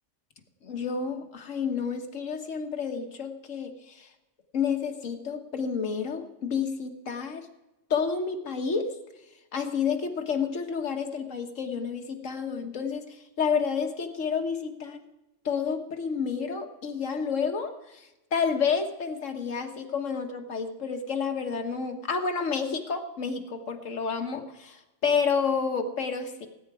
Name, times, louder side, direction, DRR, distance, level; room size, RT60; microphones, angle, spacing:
voice 1, 0.6-4.1 4.5-7.5 7.9-8.9 9.5-13.0 13.4-15.0 15.4-26.5, left 6 dB, 80° left, 5 dB, 1.6 m, -30 dB
18.5 x 8.9 x 4.8 m, 1.0 s
omnidirectional pair, 1.3 m